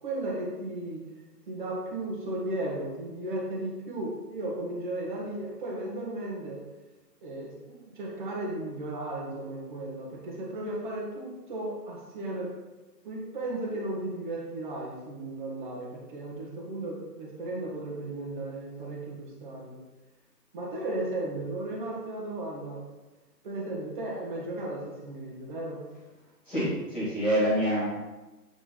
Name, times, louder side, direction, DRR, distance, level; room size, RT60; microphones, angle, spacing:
voice 1, 0.0-1.0 1.5-6.6 7.2-12.5 13.0-19.8 20.5-22.8 23.4-25.8, right 1 dB, 30° right, -3 dB, 1.6 m, -35 dB
voice 2, 26.5-27.9, equal, ahead, -13 dB, 0.9 m, -26 dB
9.0 x 3.8 x 4.2 m, 1.1 s
figure-of-eight pair, 150°, 50 cm